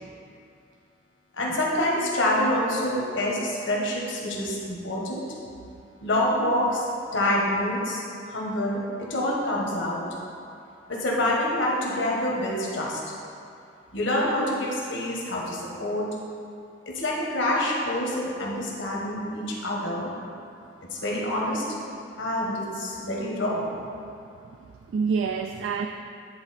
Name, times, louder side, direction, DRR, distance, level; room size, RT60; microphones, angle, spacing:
voice 1, 1.3-5.2 6.0-6.8 7.1-10.0 10.9-13.0 13.9-16.1 16.9-20.1 20.9-21.6 22.2-23.7, left 1 dB, 80° left, -3 dB, 1.3 m, -26 dB
voice 2, 24.0-25.9, right 5 dB, 85° right, 5 dB, 0.3 m, -30 dB
9.8 x 4.0 x 4.3 m, 2.5 s
head